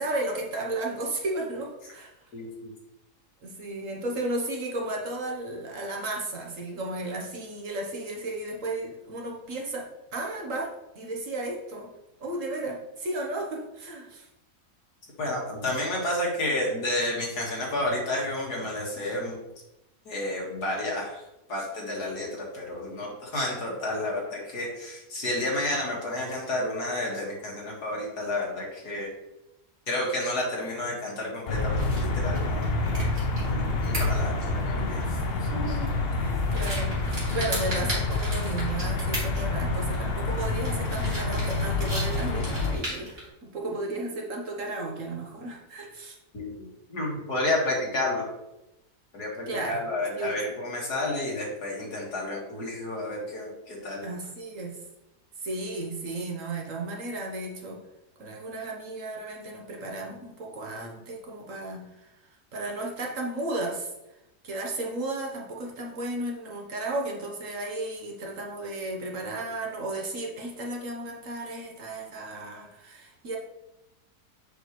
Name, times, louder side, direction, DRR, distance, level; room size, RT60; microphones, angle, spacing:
voice 1, 0.0-2.1 3.4-11.9 12.2-14.3 35.3-36.9 37.3-46.2 49.5-49.8 50.2-50.3 54.0-54.8 55.4-57.8 58.2-61.9 62.5-63.9 64.4-73.4, right 2 dB, 55° right, 0 dB, 1.4 m, -34 dB
voice 2, 2.3-2.7 15.2-19.4 20.1-21.2 21.5-29.1 29.9-33.0 33.4-35.8 46.3-48.2 49.1-54.0, left 1 dB, 75° left, -3 dB, 2.4 m, -31 dB
sound 1, 31.5-42.7, left 2 dB, 45° left, 0.9 m, -28 dB
sound 2, 31.7-43.3, right 1 dB, 35° right, 2.8 m, -38 dB
6.7 x 6.1 x 3.1 m, 0.91 s
omnidirectional pair, 1.7 m